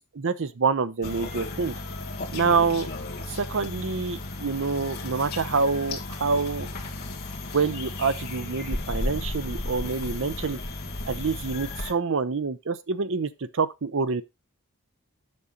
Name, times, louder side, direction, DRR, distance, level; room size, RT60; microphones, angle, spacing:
voice 1, 0.2-1.7 2.3-2.9 3.3-6.7 7.5-10.6 11.1-14.2, right 4 dB, 60° right, 0.7 m, -26 dB
sound 1, 1.0-11.9, left 2 dB, 45° left, 1.9 m, -34 dB
8.5 x 6.4 x 3.9 m
head